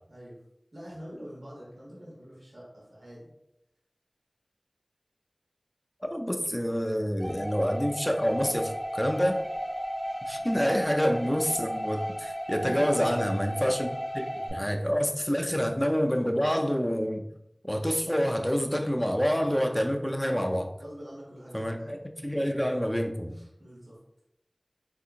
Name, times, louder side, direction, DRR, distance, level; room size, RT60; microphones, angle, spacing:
voice 1, 0.1-0.4 0.7-3.3 10.4-10.6 12.6-13.2 19.7-20.1 20.8-21.9 23.3-24.0, equal, 75° right, -6 dB, 1.0 m, -44 dB
voice 2, 6.0-9.4 10.3-14.2 14.5-17.3 17.7-20.7 21.5-23.3, equal, 10° left, 4 dB, 0.3 m, -27 dB
sound 1, 7.2-14.5, equal, 35° right, 1.0 m, -34 dB
3.5 x 2.7 x 2.4 m, 0.83 s
wide cardioid pair, 45°, 0 cm